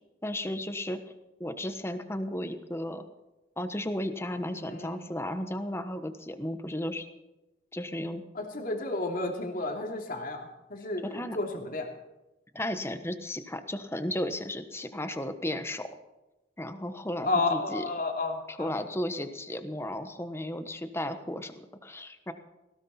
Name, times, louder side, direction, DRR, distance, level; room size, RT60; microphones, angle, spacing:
voice 1, 0.2-1.0 1.4-3.0 3.6-7.1 7.7-8.2 11.0-11.4 12.5-15.9 16.6-17.8 18.5-22.3, left 1 dB, 15° left, 9 dB, 1.2 m, -34 dB
voice 2, 4.5-5.1 8.3-11.0 11.3-11.9 17.2-18.8, left 2 dB, 50° left, 2 dB, 3.0 m, -32 dB
19.0 x 17.0 x 4.3 m, 1.0 s
head